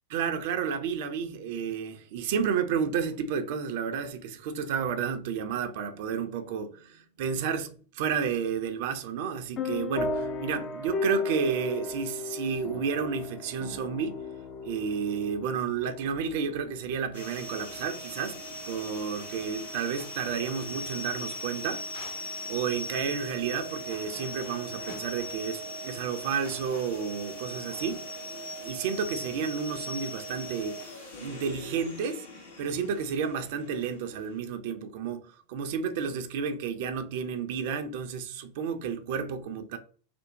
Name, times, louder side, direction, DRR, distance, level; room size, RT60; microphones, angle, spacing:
voice 1, 0.1-14.2 14.6-21.8 22.5-28.1 28.6-32.3 32.6-39.8, right 6 dB, 50° right, 0.4 m, -31 dB
sound 1, 9.6-17.7, left 3 dB, 30° left, 0.4 m, -35 dB
sound 2, 17.1-34.4, left 1 dB, 65° left, 0.9 m, -40 dB
2.5 x 2.0 x 2.8 m
figure-of-eight pair, 90°, 0 cm